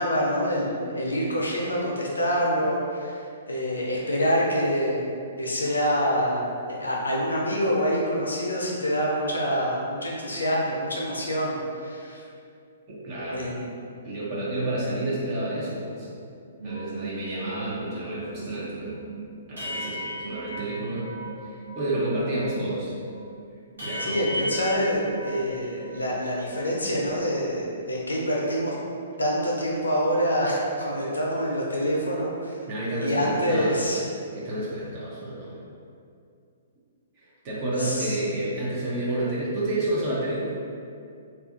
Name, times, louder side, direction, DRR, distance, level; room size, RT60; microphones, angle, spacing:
voice 1, 0.0-5.1 5.4-12.2 13.3-13.7 24.0-28.7 29.2-32.5 33.0-34.1 37.8-38.2, equal, 75° left, -3 dB, 0.5 m, -26 dB
voice 2, 12.9-13.5 14.0-16.1 16.6-19.0 19.5-21.1 21.4-22.9 23.8-24.3 32.7-33.9 34.3-35.6 37.4-40.5, right 1 dB, 35° right, -8 dB, 0.7 m, -30 dB
sound 1, 16.6-22.0 22.3-26.2 26.4-27.6, right 1 dB, 70° right, 0.9 m, -37 dB
2.4 x 2.4 x 2.5 m, 2.4 s
figure-of-eight pair, 120°, 0 cm